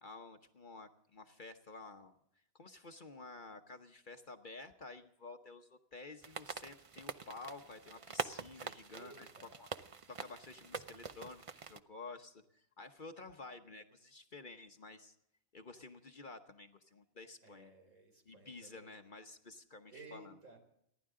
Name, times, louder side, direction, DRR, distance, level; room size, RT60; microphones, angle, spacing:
voice 1, 0.0-2.2 2.5-9.3 9.6-9.7 10.1-15.1 15.5-17.7 18.2-20.3, left 3 dB, 40° left, 7 dB, 1.0 m, -51 dB
sound 1, 6.2-11.8, right 5 dB, 40° right, 0.4 m, -45 dB
voice 2, 8.9-9.5 17.4-19.0 19.9-20.6, right 3 dB, 85° right, 3 dB, 4.6 m, -56 dB
30.0 x 11.5 x 3.7 m, 0.74 s
omnidirectional pair, 1.4 m